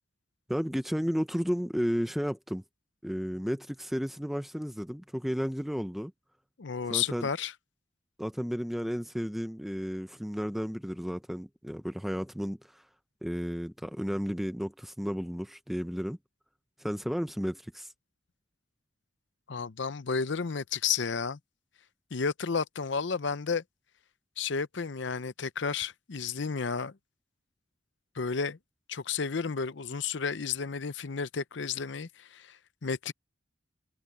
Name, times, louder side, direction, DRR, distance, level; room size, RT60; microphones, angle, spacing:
voice 1, 0.5-2.6 3.0-6.1 6.9-7.3 8.2-12.9 13.2-16.2 16.8-17.9, equal, ahead, 0.6 m, -33 dB
voice 2, 6.6-7.5 19.5-21.4 22.1-23.6 24.4-26.9 28.2-28.6 28.9-33.1, left 5 dB, 65° left, 0.7 m, -32 dB
head